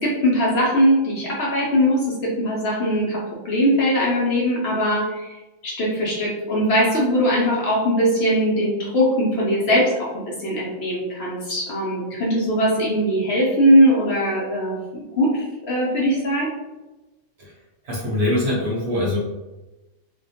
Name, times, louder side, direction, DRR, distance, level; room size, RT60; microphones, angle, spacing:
voice 1, 0.0-5.3 5.6-10.1 10.4-16.5, equal, 60° left, -5 dB, 0.8 m, -20 dB
voice 2, 17.8-19.2, left 1 dB, 60° right, -4 dB, 0.8 m, -23 dB
2.4 x 2.2 x 2.7 m, 1.1 s
omnidirectional pair, 1.4 m